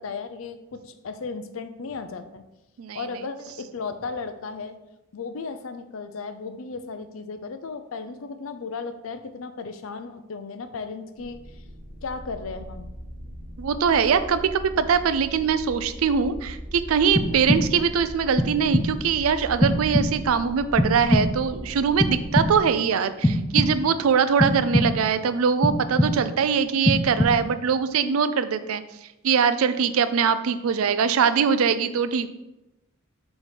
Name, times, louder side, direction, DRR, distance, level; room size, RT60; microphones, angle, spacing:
voice 1, 0.0-2.4 2.9-4.8 5.1-11.4 12.0-12.9 17.3-17.6, left 4 dB, 75° left, 10 dB, 0.5 m, -35 dB
sound 1, 11.2-22.6, equal, 40° right, 1.4 m, -39 dB
voice 2, 13.6-28.8 29.2-32.3, right 6 dB, 85° right, 12 dB, 0.4 m, -22 dB
sound 2, 17.2-17.9 18.4-19.1 19.6-20.4 20.8-21.6 22.0-22.8 23.2-24.0 24.4-25.2 25.6-26.4 26.8-27.7, equal, 10° left, 0.4 m, -24 dB
4.8 x 4.1 x 4.9 m, 0.95 s
head